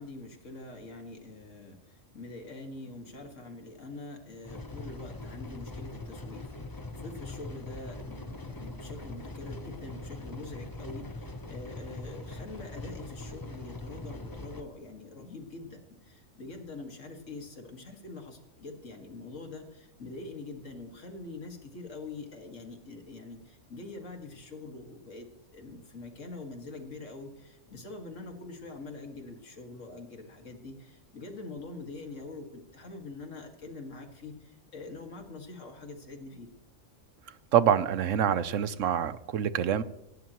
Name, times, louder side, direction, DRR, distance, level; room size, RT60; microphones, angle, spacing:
voice 1, 0.0-25.3 25.5-36.5, left 3 dB, 75° left, 4 dB, 2.4 m, -44 dB
sound 1, 4.4-14.6, left 2 dB, 20° left, 0.8 m, -42 dB
voice 2, 37.5-39.8, right 9 dB, 80° right, 14 dB, 1.1 m, -26 dB
18.0 x 16.5 x 3.1 m, 0.87 s
omnidirectional pair, 1.3 m